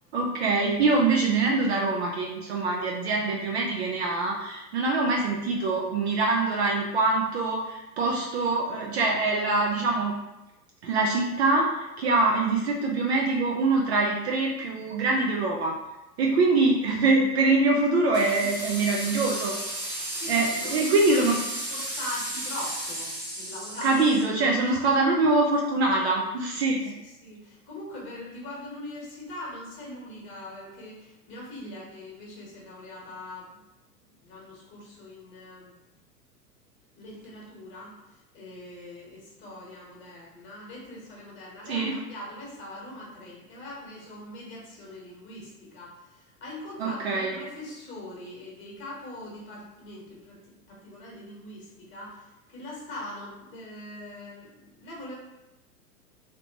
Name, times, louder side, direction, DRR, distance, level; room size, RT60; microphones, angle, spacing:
voice 1, 0.1-10.1 10.8-15.7 16.2-19.5 20.3-21.4 23.8-26.8 41.7-42.0 46.8-47.3, right 3 dB, 45° right, -1 dB, 0.5 m, -24 dB
sound 1, 18.1-24.2, right 1 dB, 90° right, 1.2 m, -34 dB
voice 2, 18.4-19.1 20.2-21.2 21.5-24.1 24.4-24.9 26.7-33.6 34.2-35.7 36.9-37.9 38.3-50.4 50.7-55.1, left 1 dB, 25° left, -4 dB, 1.2 m, -42 dB
3.1 x 2.8 x 2.8 m, 0.97 s
figure-of-eight pair, 100°, 49 cm